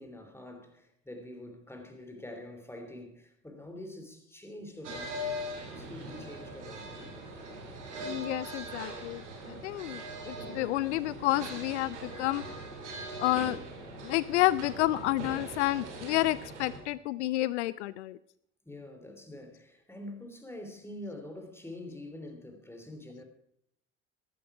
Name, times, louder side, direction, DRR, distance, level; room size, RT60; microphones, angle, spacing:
voice 1, 0.0-5.2 5.6-7.3 18.6-23.2, left 1 dB, 5° left, 3.0 m, -45 dB
sound 1, 4.8-16.8, right 1 dB, 80° right, 2.7 m, -41 dB
voice 2, 8.0-9.2 9.5-12.4 13.2-13.6 14.0-18.2, left 16 dB, 75° left, 0.5 m, -30 dB
14.5 x 12.0 x 4.8 m
figure-of-eight pair, 55°, 35 cm